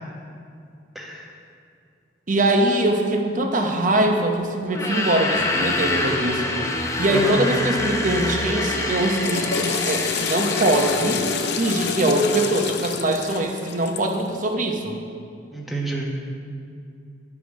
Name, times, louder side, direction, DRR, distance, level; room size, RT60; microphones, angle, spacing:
voice 1, 0.9-1.3 7.1-7.4 15.5-16.1, right 2 dB, ahead, -3 dB, 1.1 m, -29 dB
voice 2, 2.3-6.4 7.0-11.2 11.6-15.0, right 1 dB, 40° right, 3 dB, 0.9 m, -22 dB
sound 1, 4.7-11.9, left 2 dB, 15° left, 0.7 m, -26 dB
Water / Toilet flush, 9.0-14.2, left 6 dB, 60° left, 0.6 m, -27 dB
11.5 x 5.0 x 6.1 m, 2.5 s
head